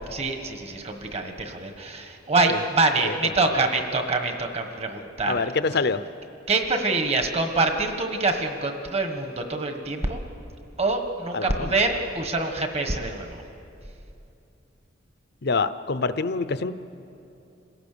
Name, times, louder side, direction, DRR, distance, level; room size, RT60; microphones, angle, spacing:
voice 1, 0.1-5.3 6.5-10.2 10.8-13.4, right 3 dB, 35° right, 5 dB, 1.6 m, -25 dB
voice 2, 5.3-6.0 11.3-11.7 15.4-16.7, left 4 dB, 55° left, 13 dB, 0.7 m, -26 dB
27.5 x 17.0 x 6.9 m, 2.8 s
head